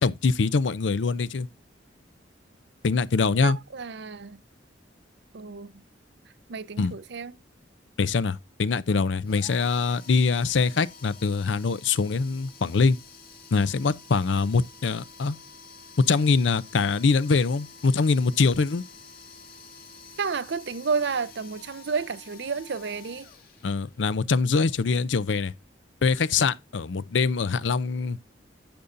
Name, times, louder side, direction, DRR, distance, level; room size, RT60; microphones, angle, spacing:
voice 1, 0.0-1.5 2.8-3.6 6.8-6.9 8.0-13.0 13.5-15.4 16.1-18.8 23.6-25.5 26.0-28.2, left 4 dB, 75° left, 0.5 m, -23 dB
voice 2, 3.4-4.4 5.3-5.7 6.5-7.3 20.2-23.3, right 5 dB, 65° right, 0.6 m, -31 dB
sound 1, 9.2-24.1, left 4 dB, 55° left, 1.9 m, -49 dB
10.5 x 7.1 x 2.6 m
head